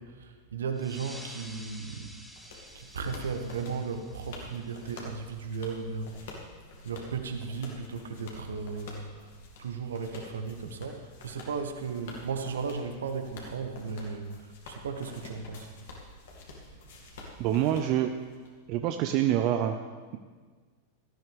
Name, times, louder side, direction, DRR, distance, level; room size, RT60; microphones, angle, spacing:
voice 1, 0.0-2.1 2.7-6.4 6.8-9.3 9.6-15.7 16.9-17.2, right 5 dB, 65° right, 6 dB, 1.3 m, -36 dB
sound 1, 0.7-5.8, equal, ahead, 1.0 m, -50 dB
sound 2, 1.9-18.5, left 3 dB, 55° left, 2.4 m, -49 dB
voice 2, 17.4-18.2 18.7-19.8, right 11 dB, 40° right, 6 dB, 0.6 m, -26 dB
17.5 x 13.5 x 3.6 m, 1.5 s
figure-of-eight pair, 90°, 0 cm